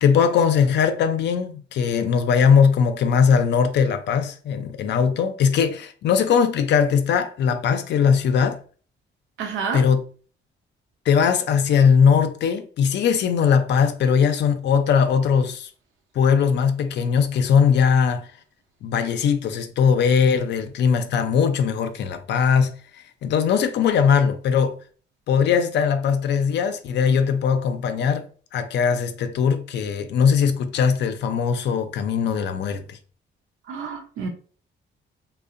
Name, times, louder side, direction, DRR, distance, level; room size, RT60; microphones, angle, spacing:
voice 1, 0.0-8.6 9.7-10.0 11.1-15.7 16.1-18.3 18.8-22.7 23.2-24.8 25.3-28.3 28.5-33.0, left 6 dB, 65° left, 0.4 m, -20 dB
voice 2, 9.4-9.8 33.7-34.3, right 5 dB, 85° right, 0.7 m, -29 dB
2.7 x 2.0 x 2.4 m
cardioid pair, 90°, 20 cm